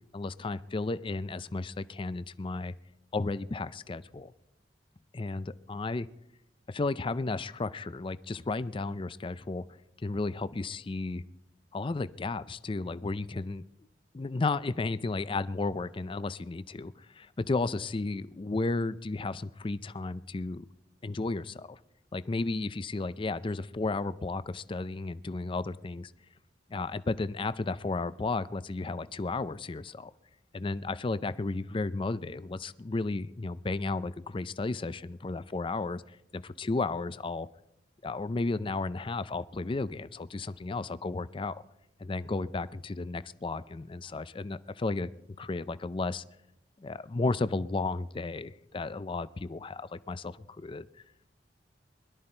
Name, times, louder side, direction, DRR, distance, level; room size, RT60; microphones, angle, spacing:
voice 1, 0.1-2.7 3.1-4.3 5.1-6.1 6.7-9.6 10.0-11.2 11.7-13.6 14.1-20.7 21.0-21.8 22.1-26.1 26.7-30.1 30.5-37.5 38.0-41.6 42.0-45.1 45.4-46.2 46.8-50.9, left 3 dB, 30° left, 16 dB, 0.4 m, -33 dB
21.0 x 12.5 x 4.4 m, 0.82 s
head